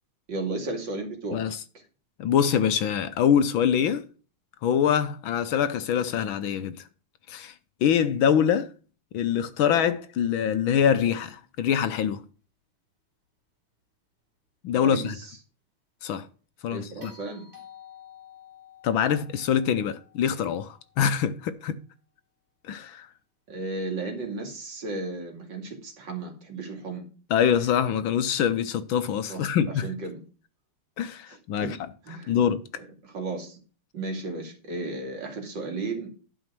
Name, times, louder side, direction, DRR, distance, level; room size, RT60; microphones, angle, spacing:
voice 1, 0.3-1.6 14.8-15.4 16.7-17.4 23.5-27.0 29.3-29.5 29.8-30.2 31.3-31.7 32.0-32.4 32.8-33.6 33.9-36.1, right 3 dB, 55° right, 3.0 m, -34 dB
voice 2, 1.3-1.6 2.2-4.0 4.6-6.8 7.3-7.5 7.8-8.7 9.1-12.2 14.6-15.1 16.0-16.3 16.6-17.1 18.8-21.8 22.7-23.1 27.3-29.9 31.0-31.8 32.3-32.6, left 8 dB, 70° left, 1.5 m, -24 dB
sound 1, 17.0-21.3 23.5-23.6, left 7 dB, 25° right, 3.3 m, -51 dB
11.5 x 5.1 x 6.0 m
omnidirectional pair, 2.4 m